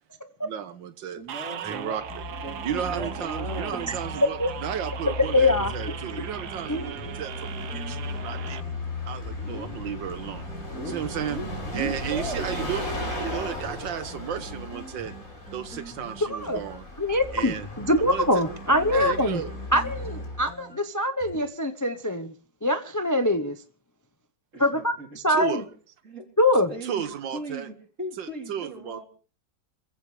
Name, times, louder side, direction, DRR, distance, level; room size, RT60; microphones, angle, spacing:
voice 1, 0.4-2.2 2.6-8.7 9.1-10.5 10.9-11.4 11.7-12.9 13.2-15.1 15.5-16.8 17.3-17.7 18.0-18.4 18.9-19.5 25.3-25.7 26.8-27.7 28.2-29.0, right 9 dB, 90° right, 1.8 m, -33 dB
voice 2, 1.1-2.0 2.4-4.0 9.4-9.7 10.7-13.6 24.5-25.1 26.0-26.2 26.7-27.0 27.3-29.1, right 1 dB, 40° right, 4.5 m, -38 dB
sound 1, 1.3-8.6, right 9 dB, 65° right, 1.5 m, -39 dB
sound 2, 1.6-21.4, right 1 dB, 5° right, 4.4 m, -46 dB
Bus, 2.0-20.6, left 2 dB, 50° left, 5.8 m, -36 dB
voice 3, 5.3-5.7 6.7-6.9 16.2-16.6 17.0-19.4 19.7-22.3 22.6-23.6 24.6-24.9 25.2-25.6 26.4-26.7, left 1 dB, 15° left, 0.7 m, -23 dB
26.5 x 15.5 x 3.3 m
omnidirectional pair, 1.9 m